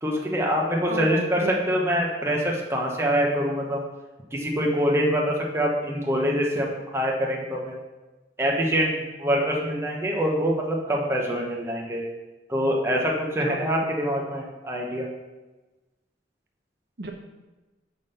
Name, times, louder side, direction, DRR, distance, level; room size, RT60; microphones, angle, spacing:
voice 1, 0.0-3.8 4.3-7.8 8.4-12.0 12.5-15.1, equal, 15° right, -2 dB, 1.2 m, -25 dB
voice 2, 0.9-1.5 13.5-13.9 17.0-17.1, right 2 dB, 65° right, 3 dB, 0.9 m, -32 dB
6.2 x 5.6 x 6.8 m, 1.1 s
head